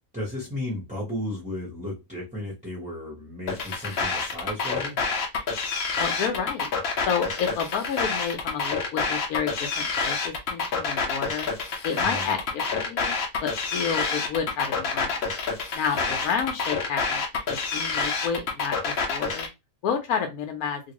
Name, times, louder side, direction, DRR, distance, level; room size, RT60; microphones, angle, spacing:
voice 1, 0.1-5.0 12.0-12.3 15.9-16.2, left 1 dB, 5° right, 0.9 m, -34 dB
sound 1, 3.5-19.5, left 4 dB, 55° left, 0.8 m, -28 dB
voice 2, 6.0-6.7 7.1-11.5 11.8-15.2 15.7-19.5 19.8-20.8, left 7 dB, 85° left, 1.1 m, -30 dB
2.9 x 2.5 x 2.9 m
omnidirectional pair, 1.5 m